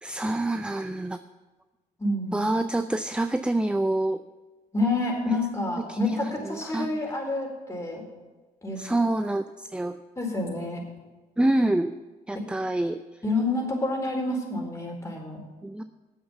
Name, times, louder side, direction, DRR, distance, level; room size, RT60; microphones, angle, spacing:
voice 1, 0.0-1.2 2.3-4.2 5.9-7.0 8.8-10.0 11.4-12.0 12.3-13.0 15.6-15.8, right 1 dB, 5° right, 11 dB, 0.5 m, -27 dB
voice 2, 2.0-2.4 4.7-8.0 8.6-8.8 10.2-10.8 13.2-15.4, left 2 dB, 15° left, 0 dB, 4.3 m, -28 dB
9.1 x 7.9 x 8.1 m, 1.2 s
hypercardioid pair, 55°, 17 cm